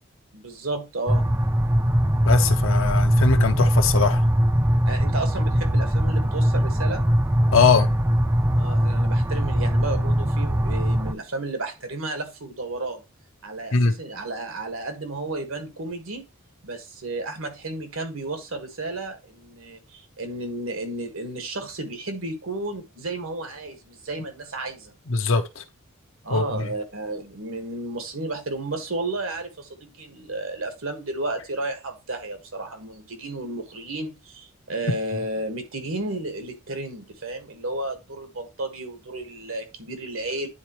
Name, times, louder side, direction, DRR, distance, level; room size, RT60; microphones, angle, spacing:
voice 1, 0.3-1.3 4.9-7.0 8.6-13.0 13.4-16.2 16.6-24.9 26.2-40.5, right 2 dB, 75° right, 1.6 m, -32 dB
sound 1, 1.1-11.1, equal, 10° right, 0.4 m, -21 dB
voice 2, 2.2-4.2 7.5-7.9 13.7-13.9 25.1-25.6 26.3-26.7, left 4 dB, 70° left, 0.8 m, -20 dB
9.7 x 4.1 x 3.0 m
head